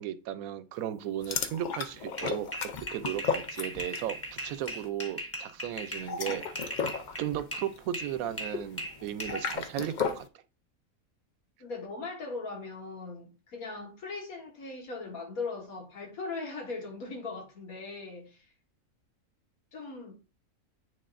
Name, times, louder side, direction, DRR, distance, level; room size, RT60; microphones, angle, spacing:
voice 1, 0.0-2.5 2.8-6.9 7.2-10.3, right 11 dB, 80° right, 1.0 m, -35 dB
sound 1, 1.2-4.1 4.4-4.7 5.9-10.3, left 6 dB, 60° left, 0.5 m, -35 dB
sound 2, 2.2-7.7 7.9-9.5, equal, 10° left, 1.0 m, -38 dB
voice 2, 11.6-18.4 19.7-20.1, left 3 dB, 85° left, 2.0 m, -39 dB
9.4 x 4.0 x 2.5 m
omnidirectional pair, 1.5 m